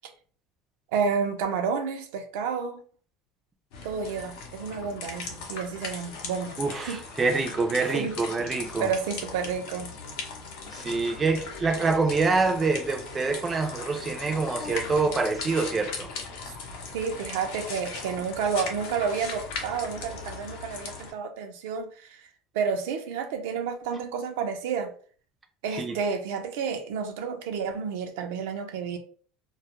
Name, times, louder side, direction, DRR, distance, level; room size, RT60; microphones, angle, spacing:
voice 1, 0.9-2.8 3.8-7.0 7.9-8.1 8.8-9.9 16.9-22.3 22.5-24.9 25.6-29.0, right 6 dB, 85° right, 0.5 m, -30 dB
sound 1, 3.7-21.1, left 4 dB, 80° left, 0.6 m, -38 dB
voice 2, 6.6-8.9 10.7-16.1 25.8-25.9, right 4 dB, 20° right, 0.3 m, -26 dB
2.2 x 2.1 x 2.9 m
cardioid pair, 135°, 0 cm